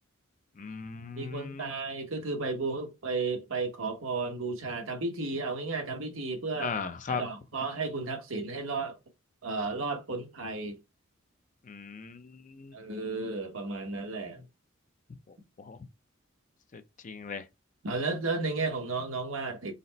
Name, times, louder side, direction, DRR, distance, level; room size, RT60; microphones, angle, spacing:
voice 1, 0.6-1.7 6.6-7.2 11.6-12.7 15.3-15.9 16.7-17.5, left 5 dB, 40° left, 0.5 m, -38 dB
voice 2, 1.2-6.7 7.1-8.9 9.4-10.8 12.7-14.4 17.8-19.7, right 3 dB, 75° right, 1.0 m, -33 dB
4.1 x 2.1 x 3.9 m
head